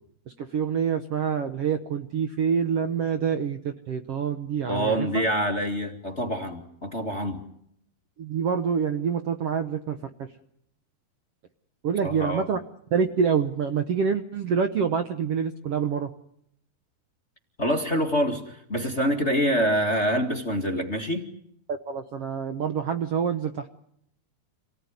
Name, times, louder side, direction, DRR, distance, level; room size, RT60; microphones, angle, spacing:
voice 1, 0.4-5.2 8.2-10.3 11.8-12.6 12.9-16.1 21.7-23.7, right 6 dB, 90° right, 8 dB, 1.3 m, -26 dB
voice 2, 4.7-7.4 12.0-12.4 17.6-21.3, equal, 25° left, 4 dB, 1.5 m, -26 dB
28.0 x 18.0 x 9.7 m, 0.72 s
omnidirectional pair, 4.4 m